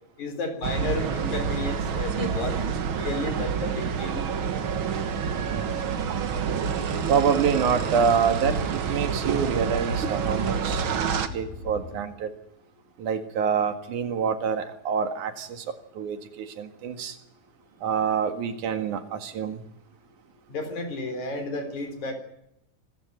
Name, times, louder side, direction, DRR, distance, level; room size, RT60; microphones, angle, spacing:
voice 1, 0.2-4.2 20.5-22.1, left 2 dB, 60° left, 6 dB, 5.3 m, -32 dB
sound 1, 0.6-11.3, right 7 dB, 50° right, 1.7 m, -28 dB
sound 2, 5.0-12.0, left 4 dB, 85° left, 3.5 m, -41 dB
voice 2, 7.1-12.3 13.0-15.7 16.0-17.2 17.8-19.6, right 6 dB, 70° right, 8 dB, 3.3 m, -26 dB
25.5 x 14.5 x 9.6 m, 0.80 s
omnidirectional pair, 3.8 m